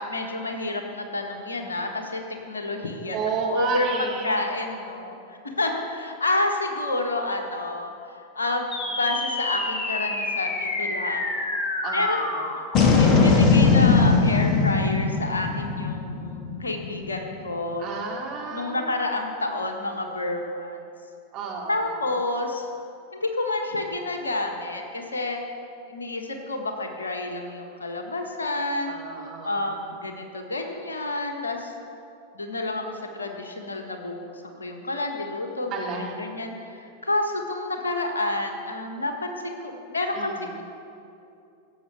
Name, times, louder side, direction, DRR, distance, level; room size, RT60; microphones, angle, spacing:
voice 1, 0.0-3.2 3.5-7.9 8.3-11.4 11.9-17.9 18.5-20.8 21.7-22.7 23.2-25.4 25.9-29.0 29.4-31.7 32.3-34.3 34.6-40.6, left 2 dB, 75° left, 4 dB, 1.5 m, -29 dB
voice 2, 3.1-4.4 11.8-12.4 17.8-19.0 21.3-22.0 28.9-29.9 35.7-36.1 40.2-40.3, right 4 dB, 35° right, -1 dB, 2.7 m, -31 dB
sound 1, 8.7-17.3, left 4 dB, 35° left, 1.8 m, -22 dB
16.5 x 7.7 x 6.9 m, 2.6 s
figure-of-eight pair, 90°, 0 cm